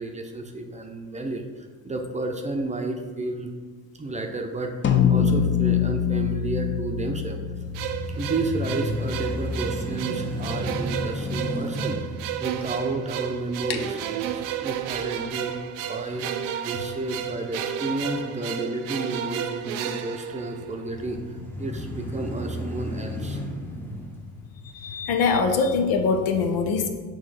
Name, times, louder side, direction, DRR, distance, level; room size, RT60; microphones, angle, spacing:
voice 1, 0.0-3.5 4.0-7.4 8.2-12.1 12.4-15.6 15.9-16.2 16.6-23.4, right 2 dB, 20° right, 3 dB, 0.7 m, -31 dB
sound 1, 4.8-9.4, left 8 dB, 30° left, 0.6 m, -24 dB
sound 2, 7.5-15.7 16.2-16.3 20.8-25.3, left 1 dB, 5° left, 1.0 m, -34 dB
sound 3, 7.7-21.0, right 10 dB, 80° right, 0.6 m, -32 dB
voice 2, 24.7-26.9, left 4 dB, 70° left, 6 dB, 0.9 m, -23 dB
6.5 x 3.1 x 4.9 m, 1.4 s
supercardioid pair, 80°, 39 cm